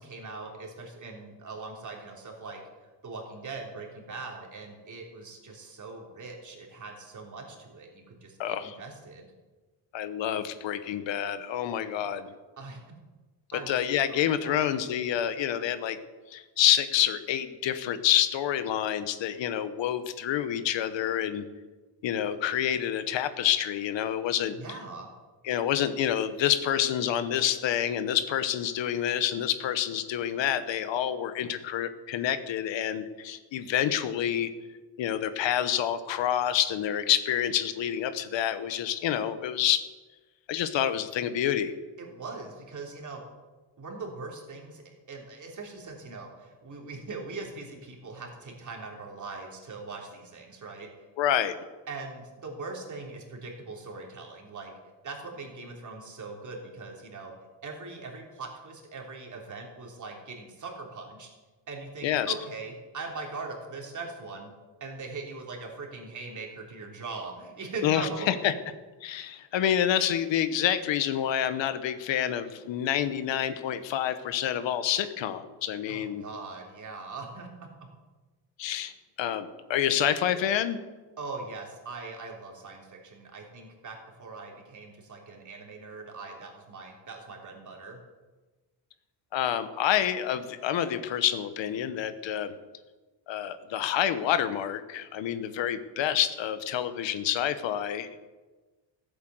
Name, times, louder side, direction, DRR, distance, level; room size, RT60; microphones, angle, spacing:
voice 1, 0.0-2.6 3.0-9.3 12.6-12.8 13.5-13.7 14.1-14.7 24.5-25.1 42.0-43.2 43.8-50.9 51.9-54.7 55.0-57.3 57.6-61.3 61.7-64.5 64.8-68.3 75.9-77.5 81.2-88.0, right 3 dB, 40° right, 0 dB, 3.4 m, -41 dB
voice 2, 8.4-8.8 9.9-12.3 13.5-16.0 16.3-21.4 22.0-24.6 25.4-34.5 35.0-39.8 40.5-41.7 51.2-51.6 62.0-62.3 67.8-68.5 69.0-76.2 78.6-78.9 79.2-80.8 89.3-92.5 93.3-98.1, left 10 dB, 85° left, 11 dB, 1.1 m, -28 dB
15.5 x 8.5 x 7.7 m, 1.2 s
cardioid pair, 140°, 43 cm